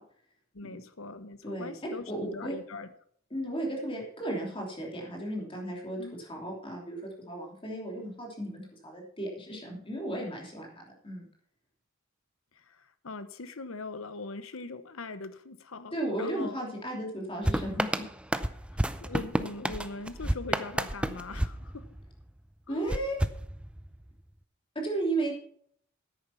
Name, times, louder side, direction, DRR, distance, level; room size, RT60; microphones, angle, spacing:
voice 1, 0.5-2.9 6.0-6.1 12.5-16.5 18.7-21.8 22.7-22.9, left 3 dB, 70° left, 12 dB, 1.0 m, -41 dB
voice 2, 1.4-1.7 2.1-2.6 3.3-11.3 15.9-18.1 22.7-23.2 24.7-25.3, right 1 dB, 25° left, -1 dB, 3.1 m, -35 dB
sound 1, 17.4-22.3 22.9-24.1, right 1 dB, 5° right, 0.5 m, -31 dB
10.0 x 9.0 x 5.8 m, 0.63 s
head